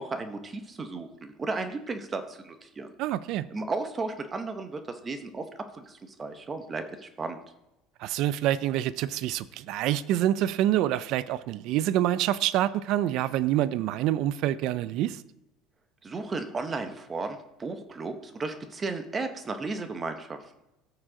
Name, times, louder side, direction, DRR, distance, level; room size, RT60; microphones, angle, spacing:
voice 1, 0.0-2.9 3.5-7.4 16.0-20.6, right 3 dB, 20° right, 0.7 m, -34 dB
voice 2, 3.0-3.5 8.0-15.2, right 13 dB, 50° right, 0.4 m, -26 dB
14.0 x 4.8 x 3.8 m
cardioid pair, 165°, 0 cm